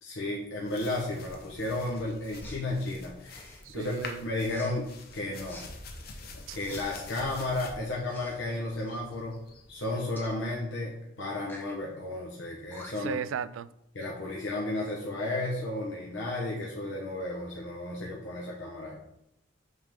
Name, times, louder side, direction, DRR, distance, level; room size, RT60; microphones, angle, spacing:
voice 1, 0.0-5.6 6.5-9.4 9.7-13.2 13.9-19.0, left 2 dB, 70° left, 1.2 m, -33 dB
sound 1, 0.6-10.5, left 3 dB, 50° left, 0.8 m, -47 dB
Respiratory sounds, 2.4-2.6 3.3-3.7 4.4-4.7 5.4-5.7 6.5-7.2 8.0-8.4 8.7-9.0 10.1-10.3 11.4-11.7 12.4-12.5 12.7-13.2, left 1 dB, 10° left, 0.7 m, -49 dB
voice 2, 3.7-4.2 6.5-6.6 13.0-13.7, right 7 dB, 80° right, 0.3 m, -35 dB
8.1 x 3.8 x 3.7 m
head